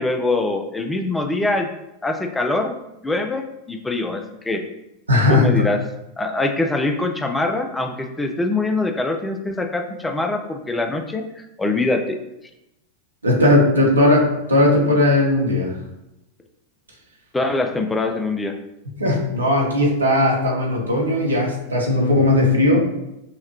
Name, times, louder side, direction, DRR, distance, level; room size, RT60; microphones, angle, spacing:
voice 1, 0.0-1.7 2.0-2.8 3.0-4.6 5.3-5.8 6.2-12.2 17.3-18.6, left 2 dB, 10° left, 5 dB, 0.4 m, -23 dB
voice 2, 5.1-5.6 13.2-15.8 18.9-22.8, left 1 dB, 80° right, -2 dB, 1.0 m, -17 dB
5.5 x 2.1 x 2.9 m, 0.89 s
figure-of-eight pair, 90°, 0 cm